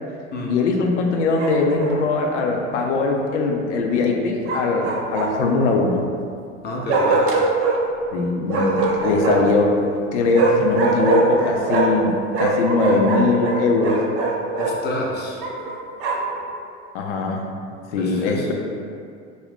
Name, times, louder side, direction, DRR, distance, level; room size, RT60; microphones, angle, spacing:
voice 1, 0.5-6.0 8.1-9.8 10.1-14.0 16.9-17.4 17.9-18.5, left 3 dB, 80° left, 1 dB, 0.5 m, -21 dB
Bark, 1.4-2.0 4.5-5.6 6.9-7.8 8.5-9.6 10.3-12.1 12.3-14.8 15.4-16.4, right 3 dB, 40° right, 0.5 m, -22 dB
voice 2, 6.6-7.3 14.6-15.5 18.0-18.5, left 1 dB, 30° left, -3 dB, 0.5 m, -28 dB
2.5 x 2.2 x 3.4 m, 2.4 s
hypercardioid pair, 80°, 36 cm